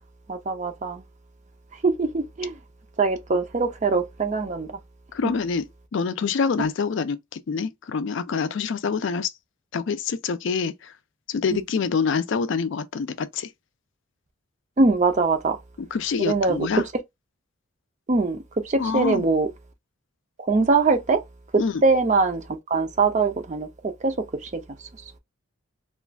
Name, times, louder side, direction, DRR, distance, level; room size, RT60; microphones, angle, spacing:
voice 1, 0.3-1.0 1.8-2.6 3.0-4.8 11.5-11.6 14.8-15.6 16.2-16.7 18.1-18.4 18.6-19.5 20.4-21.2 21.8-22.4 22.7-24.1 24.4-24.6, right 3 dB, 35° right, 0.5 m, -22 dB
voice 2, 5.1-5.7 5.9-9.3 9.7-10.9 11.3-13.5 15.8-16.8 18.8-19.3 21.6-21.8, left 5 dB, 55° left, 0.4 m, -26 dB
2.5 x 2.3 x 3.2 m
head